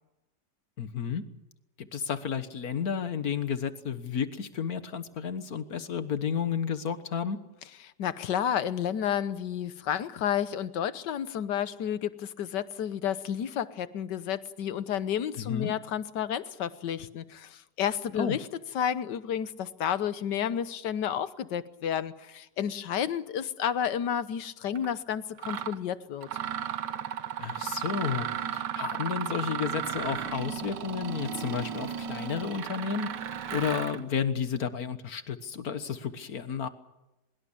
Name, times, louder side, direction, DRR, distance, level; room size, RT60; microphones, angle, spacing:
voice 1, 0.8-1.2 1.8-7.4 15.4-15.7 18.1-18.4 27.4-28.3 28.5-33.1 33.5-36.7, left 7 dB, 60° left, 11 dB, 1.8 m, -32 dB
voice 2, 8.0-18.5 18.7-26.3, left 9 dB, 85° left, 14 dB, 1.6 m, -31 dB
Mechanisms, 24.8-24.9 25.4-25.8 26.2-34.0, right 9 dB, 85° right, 1.7 m, -34 dB
24.0 x 21.5 x 7.4 m, 0.95 s
omnidirectional pair, 1.8 m